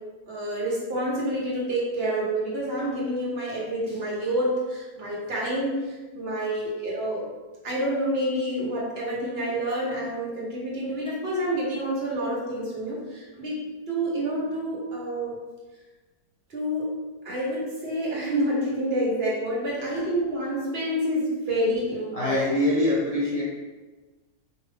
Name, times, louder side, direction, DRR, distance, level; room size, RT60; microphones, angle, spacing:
voice 1, 0.3-7.3 7.6-15.3 16.5-17.0 17.2-22.4, right 1 dB, 40° right, -5 dB, 1.2 m, -28 dB
voice 2, 22.1-23.4, left 1 dB, 60° left, -7 dB, 0.4 m, -23 dB
4.7 x 2.6 x 3.3 m, 1.2 s
omnidirectional pair, 1.7 m